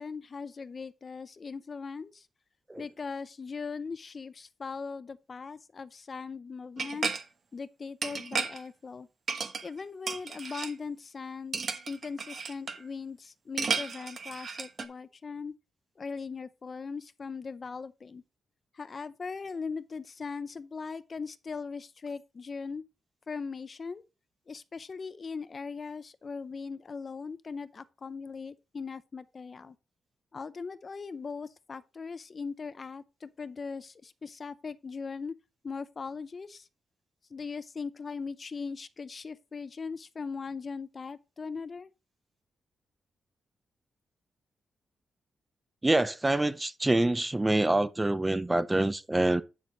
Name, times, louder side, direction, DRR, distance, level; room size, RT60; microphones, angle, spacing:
voice 1, 0.0-2.3 2.8-7.1 7.5-9.1 9.6-11.6 11.9-15.5 16.0-18.2 18.7-22.8 23.3-24.0 24.5-29.8 30.3-35.3 35.6-36.7 37.3-41.9, left 5 dB, 35° left, 0.6 m, -39 dB
sound 1, 6.8-7.2 8.0-8.6 9.3-9.8 10.1-10.7 11.5-12.8 13.6-14.8, right 5 dB, 45° right, 1.1 m, -33 dB
voice 2, 45.8-49.4, right 2 dB, 15° right, 0.6 m, -26 dB
9.1 x 6.3 x 3.9 m
wide cardioid pair, 135°, 0 cm